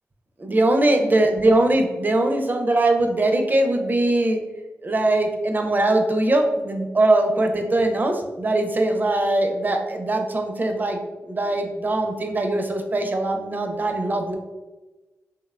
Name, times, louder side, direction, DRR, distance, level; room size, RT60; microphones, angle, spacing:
voice 1, 0.4-4.4 4.8-11.0 11.3-14.4, right 2 dB, 35° right, 4 dB, 0.4 m, -21 dB
2.8 x 2.0 x 2.3 m, 1.2 s
cardioid pair, 50°, 5 cm